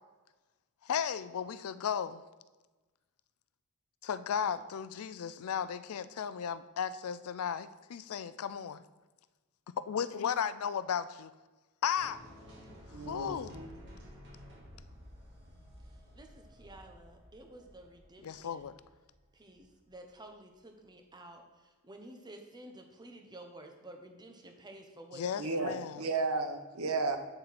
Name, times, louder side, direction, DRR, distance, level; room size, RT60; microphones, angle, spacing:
voice 1, 0.8-2.2 4.0-8.8 9.9-11.1 11.8-12.2 13.1-13.6 18.2-18.7 25.1-26.0, left 8 dB, 80° left, 15 dB, 0.4 m, -35 dB
sound 1, 11.9-20.0, equal, 55° right, 3.1 m, -53 dB
voice 2, 12.9-13.7 25.4-27.2, right 3 dB, 80° right, 6 dB, 1.0 m, -33 dB
voice 3, 16.1-18.7 19.3-25.8, right 1 dB, 20° right, 4 dB, 0.9 m, -52 dB
8.0 x 6.8 x 4.2 m, 1.2 s
head